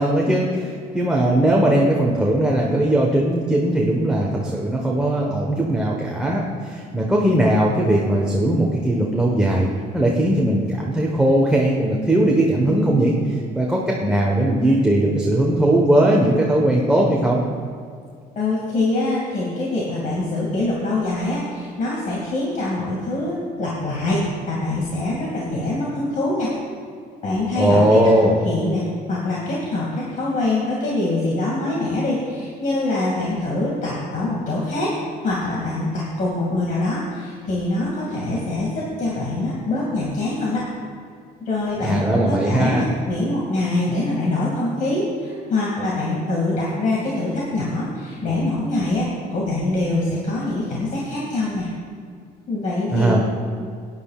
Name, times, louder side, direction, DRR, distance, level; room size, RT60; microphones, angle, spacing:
voice 1, 0.0-9.7 9.9-17.4 27.5-28.4 41.8-42.8 52.9-53.2, right 1 dB, 5° right, -3 dB, 1.3 m, -19 dB
voice 2, 18.4-24.2 24.5-26.5 27.2-27.9 28.2-34.9 35.2-40.6 41.4-51.7 52.5-53.2, left 2 dB, 50° left, -5 dB, 2.4 m, -24 dB
16.0 x 10.5 x 2.5 m, 2.3 s
cardioid pair, 110°, 17 cm